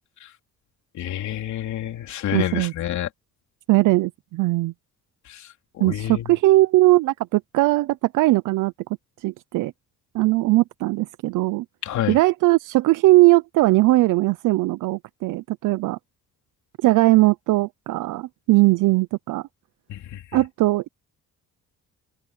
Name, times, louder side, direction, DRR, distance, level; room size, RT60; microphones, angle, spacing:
voice 1, 0.9-3.1 5.3-5.5 5.8-6.3 11.8-12.2 19.9-20.2, left 12 dB, 70° left, 3.1 m, -28 dB
voice 2, 2.3-2.7 3.7-4.7 5.8-8.7 9.2-9.7 10.1-11.6 12.1-16.0 16.8-19.4 20.3-20.9, right 19 dB, 85° right, 0.6 m, -19 dB
cardioid pair, 165°, 30 cm